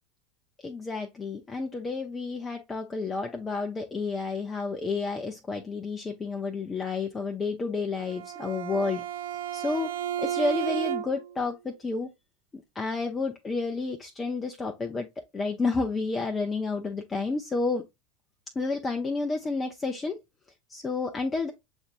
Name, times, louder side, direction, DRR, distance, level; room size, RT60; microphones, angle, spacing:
voice 1, 0.6-9.1 9.5-9.9 10.2-12.1 12.8-15.1 15.3-17.8 18.6-20.2 20.7-21.5, left 3 dB, 20° left, 0.6 m, -30 dB
Bowed string instrument, 8.0-11.4, right 10 dB, 70° right, 0.4 m, -33 dB
6.9 x 2.7 x 2.5 m
hypercardioid pair, 85°, 0 cm